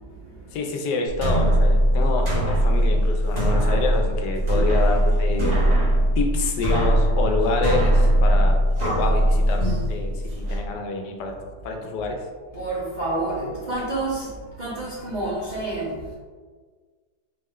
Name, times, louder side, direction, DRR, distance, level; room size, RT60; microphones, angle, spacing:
voice 1, 0.0-0.6 4.4-4.7 12.5-16.1, right 2 dB, 80° right, -7 dB, 0.4 m, -29 dB
voice 2, 0.5-5.6 6.0-12.2, left 3 dB, 85° left, 3 dB, 1.2 m, -27 dB
sound 1, 1.1-10.6, equal, 40° right, 0.6 m, -20 dB
4.0 x 2.1 x 3.6 m, 1.5 s
omnidirectional pair, 1.8 m